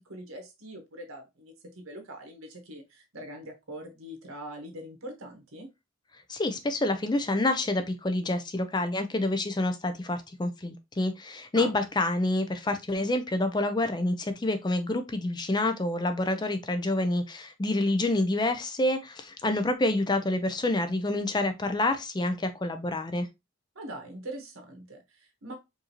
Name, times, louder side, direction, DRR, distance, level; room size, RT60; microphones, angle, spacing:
voice 1, 0.0-5.7 11.5-11.7 23.7-25.5, right 1 dB, 85° right, 1.3 m, -42 dB
voice 2, 6.3-23.3, left 2 dB, 20° left, 0.4 m, -28 dB
4.8 x 2.6 x 3.0 m
head